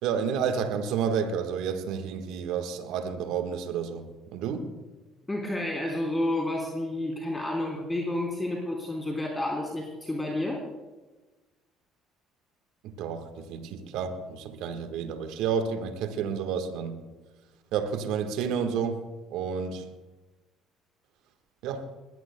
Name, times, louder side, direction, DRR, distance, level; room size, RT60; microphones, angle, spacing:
voice 1, 0.0-4.7 12.8-17.0 17.7-19.0 19.3-19.9 21.6-21.8, right 7 dB, 70° right, 7 dB, 1.4 m, -30 dB
voice 2, 5.3-10.6, left 1 dB, 15° left, -2 dB, 3.4 m, -30 dB
21.0 x 17.5 x 2.2 m, 1.2 s
hypercardioid pair, 60°, 0 cm